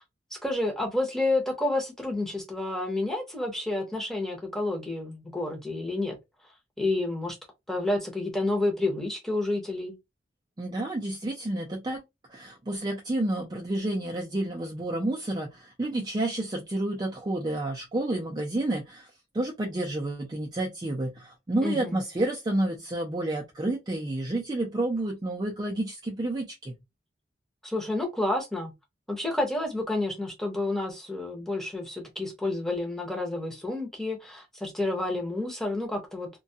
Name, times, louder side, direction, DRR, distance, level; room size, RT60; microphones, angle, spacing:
voice 1, 0.3-6.2 6.8-7.4 7.7-9.9 21.6-22.0 27.6-28.7 29.1-36.3, left 2 dB, ahead, 0.7 m, -29 dB
voice 2, 10.6-12.0 12.3-19.1 19.3-26.8, right 1 dB, 25° right, 0.4 m, -30 dB
2.2 x 2.2 x 2.6 m
head